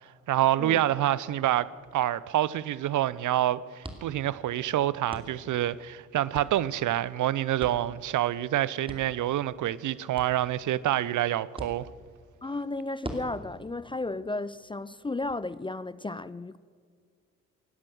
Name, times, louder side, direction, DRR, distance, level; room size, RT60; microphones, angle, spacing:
voice 1, 0.3-11.9, right 13 dB, 55° right, 0.6 m, -27 dB
sound 1, 3.1-15.3, right 1 dB, 15° right, 2.6 m, -47 dB
voice 2, 12.4-16.6, left 2 dB, 15° left, 0.5 m, -34 dB
17.5 x 12.0 x 6.3 m
hypercardioid pair, 40°, 37 cm